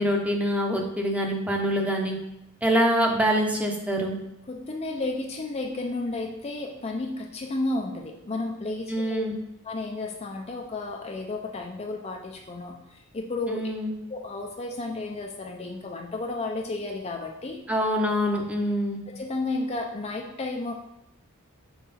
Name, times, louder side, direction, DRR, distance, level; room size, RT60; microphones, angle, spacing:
voice 1, 0.0-2.2 2.6-4.2 8.9-9.3 13.5-13.9 17.7-19.0, equal, 5° right, 1 dB, 0.8 m, -25 dB
voice 2, 4.5-9.2 9.6-13.7 14.1-17.7 19.1-20.7, left 2 dB, 30° left, 1 dB, 0.5 m, -32 dB
5.6 x 4.6 x 4.2 m, 0.88 s
head